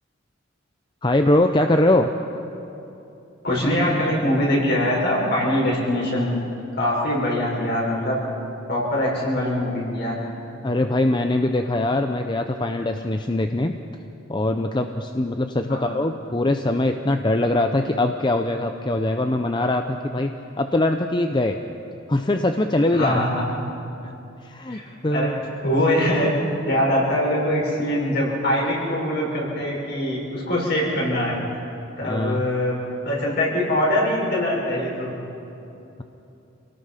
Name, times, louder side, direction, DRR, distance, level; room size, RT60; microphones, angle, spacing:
voice 1, 1.0-2.1 10.6-13.8 14.3-21.6 22.1-23.2 24.0-24.1 24.4-25.4 32.0-32.5, left 1 dB, 25° left, 6 dB, 0.6 m, -22 dB
voice 2, 3.4-6.3 6.8-8.2 8.7-10.1 15.7-15.8 22.9-23.5 24.7-25.3 25.6-26.3 26.7-31.3 32.0-32.8 33.0-35.1, left 1 dB, 55° left, -4 dB, 6.3 m, -23 dB
28.0 x 18.0 x 5.8 m, 2.9 s
head